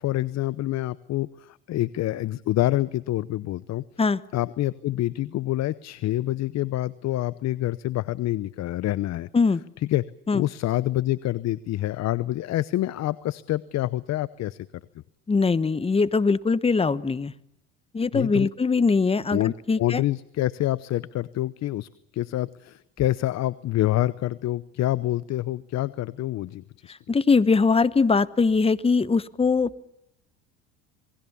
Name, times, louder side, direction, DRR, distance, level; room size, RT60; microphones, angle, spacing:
voice 1, 0.0-3.8 4.3-9.3 9.8-10.0 10.3-14.6 18.1-18.5 19.3-26.9, left 15 dB, 50° left, 18 dB, 0.8 m, -27 dB
voice 2, 15.3-17.3 17.9-19.4 19.7-20.0 27.1-29.8, left 4 dB, 15° left, 17 dB, 1.0 m, -21 dB
27.0 x 20.5 x 7.1 m, 0.81 s
supercardioid pair, 85°, 35 cm